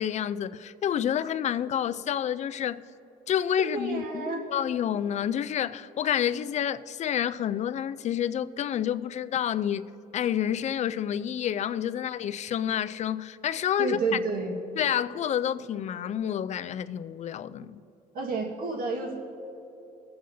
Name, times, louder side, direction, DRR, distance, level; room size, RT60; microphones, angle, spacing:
voice 1, 0.0-2.8 3.3-14.2 14.8-17.8, left 9 dB, 45° left, 0.4 m, -29 dB
voice 2, 3.6-4.4 13.8-14.5 18.1-19.1, right 4 dB, 60° right, 1.6 m, -30 dB
22.0 x 7.7 x 2.7 m
cardioid pair, 110°, 17 cm